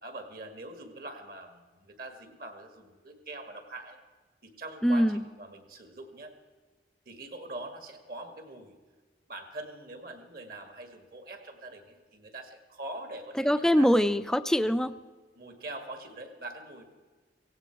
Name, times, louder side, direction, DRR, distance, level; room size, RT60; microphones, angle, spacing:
voice 1, 0.0-4.0 4.4-6.3 7.1-8.8 9.3-13.9 15.4-16.9, right 2 dB, 55° right, 6 dB, 1.9 m, -43 dB
voice 2, 4.8-5.2 13.4-14.9, equal, 5° left, 13 dB, 0.4 m, -23 dB
17.0 x 16.5 x 4.6 m, 1.3 s
head